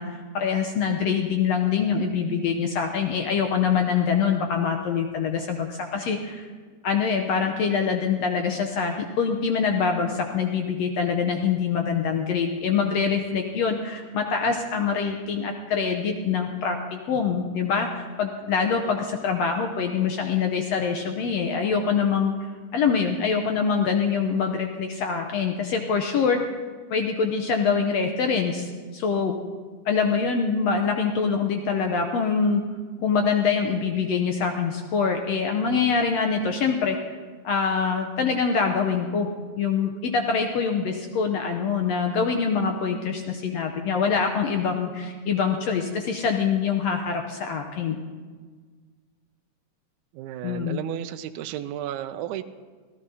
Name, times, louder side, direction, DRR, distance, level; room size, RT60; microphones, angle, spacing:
voice 1, 0.0-6.5 6.8-22.3 22.7-26.4 26.9-29.4 29.9-32.6 33.0-37.0 37.4-39.3 39.6-48.0 50.4-50.8, left 6 dB, 70° left, 4 dB, 1.7 m, -24 dB
voice 2, 50.1-52.4, right 12 dB, 80° right, 9 dB, 1.9 m, -33 dB
26.0 x 16.0 x 2.8 m, 1.5 s
omnidirectional pair, 3.6 m